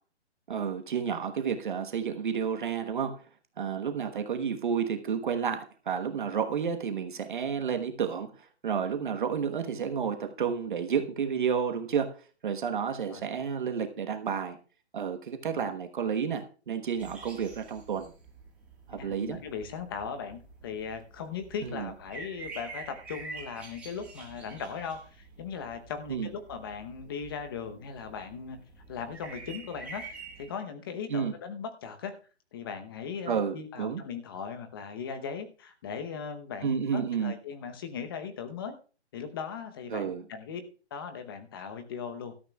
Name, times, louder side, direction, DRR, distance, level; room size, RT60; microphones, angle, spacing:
voice 1, 0.5-3.1 3.6-12.1 12.4-14.6 14.9-18.1 18.9-19.4 21.6-21.9 26.1-26.3 31.1-31.3 33.3-34.0 36.6-37.3 39.9-40.2, right 7 dB, 45° right, 6 dB, 1.2 m, -31 dB
sound 1, 17.0-30.5, right 4 dB, 5° right, 1.5 m, -47 dB
voice 2, 18.9-28.6 28.9-32.2 32.5-38.8 39.1-40.6 40.9-42.3, left 6 dB, 20° left, 8 dB, 0.8 m, -38 dB
17.0 x 12.5 x 2.3 m, 0.38 s
hypercardioid pair, 160°, 34 cm